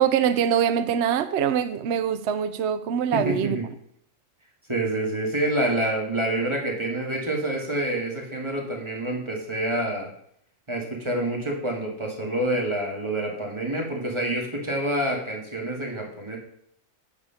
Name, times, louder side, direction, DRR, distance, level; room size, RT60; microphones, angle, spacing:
voice 1, 0.0-3.6, right 8 dB, 65° right, 0.8 m, -23 dB
voice 2, 3.1-3.6 4.7-10.1 10.7-16.4, right 1 dB, 20° right, 2.0 m, -27 dB
8.8 x 4.9 x 5.7 m
omnidirectional pair, 1.4 m